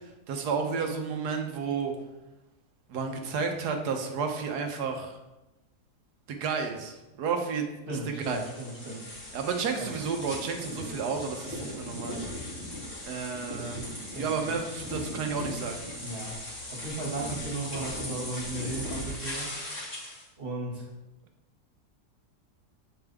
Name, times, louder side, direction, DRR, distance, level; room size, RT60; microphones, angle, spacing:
voice 1, 0.3-1.9 2.9-5.2 6.3-8.4 9.3-12.2 13.1-15.8, right 5 dB, 75° right, 4 dB, 1.4 m, -32 dB
voice 2, 7.9-9.1 14.1-14.5 16.0-16.4 16.7-19.5 20.4-20.9, right 2 dB, 35° right, -3 dB, 2.0 m, -36 dB
sound 1, 8.2-20.2, left 1 dB, 35° left, 2.7 m, -38 dB
8.4 x 5.3 x 3.5 m, 1.0 s
omnidirectional pair, 1.7 m